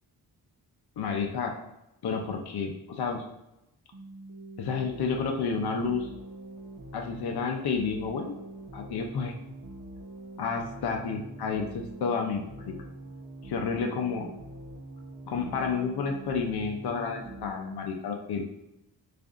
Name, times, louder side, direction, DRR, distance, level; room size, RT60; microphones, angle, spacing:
voice 1, 1.0-1.5 2.0-3.2 4.6-6.1 6.9-8.4 8.7-9.3 10.4-12.7 13.4-14.3 15.3-18.4, left 5 dB, 70° left, 2 dB, 0.7 m, -30 dB
sound 1, 3.9-17.5, right 1 dB, 50° right, 0.8 m, -44 dB
6.5 x 2.5 x 2.5 m, 0.89 s
cardioid pair, 75°, 40 cm